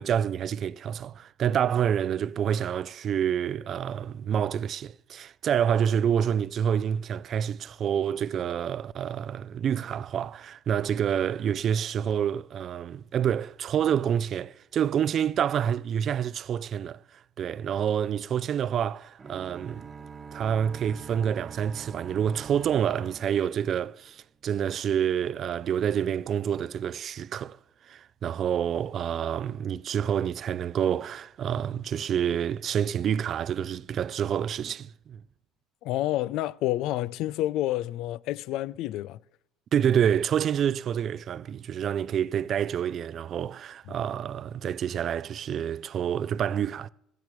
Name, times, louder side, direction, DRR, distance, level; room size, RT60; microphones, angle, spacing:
voice 1, 0.0-19.9 20.3-27.6 27.9-35.2 39.7-46.9, right 9 dB, 50° right, 0.4 m, -28 dB
sound 1, 19.2-24.2, right 6 dB, 30° right, 1.2 m, -45 dB
voice 2, 35.8-39.2, left 15 dB, 70° left, 0.4 m, -29 dB
16.0 x 16.0 x 3.1 m
supercardioid pair, 80°, 0 cm